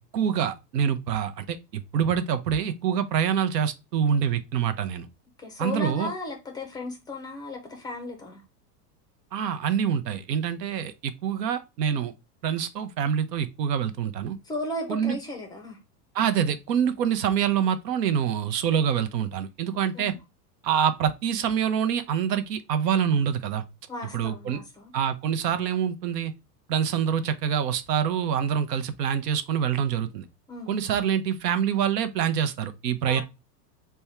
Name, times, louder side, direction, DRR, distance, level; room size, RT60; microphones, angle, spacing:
voice 1, 0.1-5.1 5.6-6.1 9.3-12.1 12.4-14.4 14.9-15.2 16.1-20.1 20.6-23.6 24.1-24.6 24.9-26.3 26.7-30.3 30.7-33.2, right 8 dB, 90° right, 0.7 m, -26 dB
voice 2, 5.4-8.4 14.4-15.8 19.9-20.2 23.9-24.9 30.5-30.9 33.0-33.2, left 2 dB, 10° left, 0.3 m, -35 dB
3.5 x 2.2 x 4.1 m
supercardioid pair, 125°, 47 cm